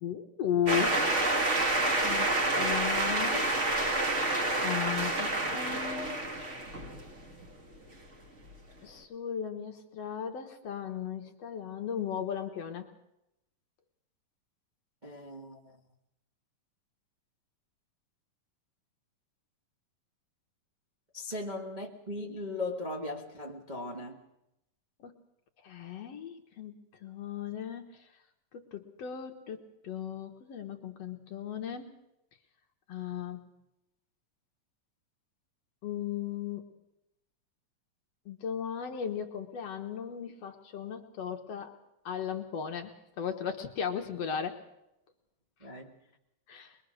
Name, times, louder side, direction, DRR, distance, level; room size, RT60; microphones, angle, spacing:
voice 1, 0.0-1.0 2.0-3.5 4.6-6.2 8.8-12.9 25.0-25.2 25.6-28.1 28.5-32.0 32.9-33.5 35.8-36.7 38.3-41.7 42.1-44.6 46.5-46.8, left 8 dB, 60° left, 5 dB, 1.9 m, -36 dB
sound 1, 0.7-7.4, right 2 dB, 35° right, 1.3 m, -28 dB
voice 2, 15.0-15.8 21.1-24.2 45.6-45.9, left 2 dB, 75° right, -2 dB, 0.4 m, -38 dB
23.0 x 22.0 x 6.4 m, 0.87 s
omnidirectional pair, 4.0 m